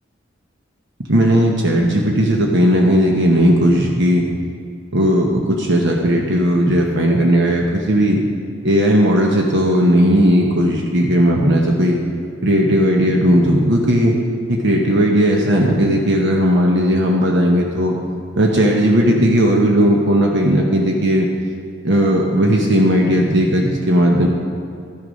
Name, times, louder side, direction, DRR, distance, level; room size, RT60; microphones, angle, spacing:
voice 1, 1.1-4.3 4.9-8.2 8.6-12.0 12.4-14.2 14.5-18.0 18.3-21.3 21.8-24.3, equal, 60° right, 0 dB, 1.0 m, -16 dB
13.0 x 6.6 x 5.2 m, 2.3 s
head